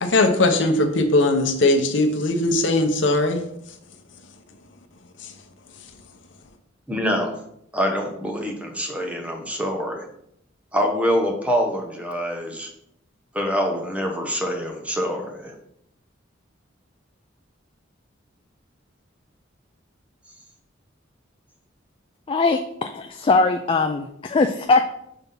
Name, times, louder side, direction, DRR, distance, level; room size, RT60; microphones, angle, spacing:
voice 1, 0.0-3.4, left 2 dB, 65° left, 6 dB, 0.8 m, -19 dB
voice 2, 6.9-7.3 7.7-10.1 10.7-12.7 13.3-15.5, equal, 5° right, 2 dB, 0.9 m, -25 dB
voice 3, 22.3-24.8, left 3 dB, 25° left, 6 dB, 0.3 m, -21 dB
5.7 x 3.5 x 5.4 m, 0.74 s
head